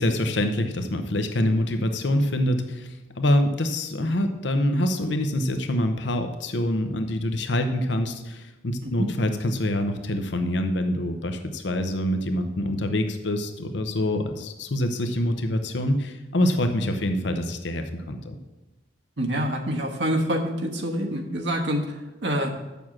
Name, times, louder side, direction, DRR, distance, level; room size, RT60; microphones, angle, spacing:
voice 1, 0.0-18.4, left 1 dB, 80° left, 7 dB, 0.8 m, -25 dB
voice 2, 19.2-22.5, equal, 80° right, 2 dB, 1.3 m, -26 dB
7.0 x 6.3 x 7.2 m, 1.1 s
head